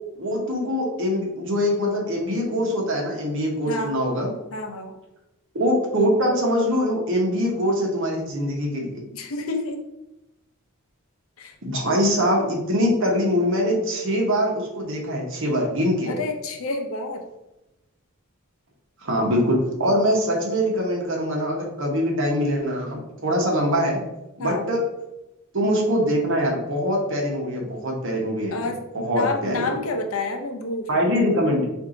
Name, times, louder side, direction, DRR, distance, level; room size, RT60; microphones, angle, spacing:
voice 1, 0.1-4.3 5.5-9.0 11.6-16.1 19.0-24.0 24.4-24.8 25.5-28.7 28.9-29.6 30.9-31.6, equal, 60° right, -1 dB, 1.1 m, -23 dB
voice 2, 3.7-4.0 4.5-4.9 9.1-9.8 11.4-11.5 16.1-17.2 24.4-24.7 28.5-28.8 29.1-31.1, left 3 dB, 65° left, 4 dB, 0.6 m, -29 dB
4.5 x 2.7 x 3.8 m, 0.96 s
head